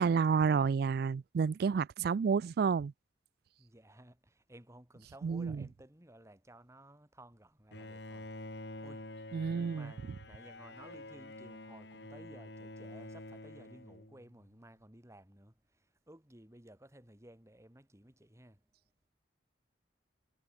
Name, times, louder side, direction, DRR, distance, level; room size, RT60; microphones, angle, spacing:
voice 1, 0.0-2.9 5.2-5.6 9.3-9.9, right 5 dB, 55° right, 0.3 m, -30 dB
voice 2, 3.6-8.3 8.8-9.1 9.6-18.6, right 1 dB, 15° right, 2.6 m, -56 dB
Bowed string instrument, 7.7-14.5, left 2 dB, 65° left, 3.1 m, -48 dB
head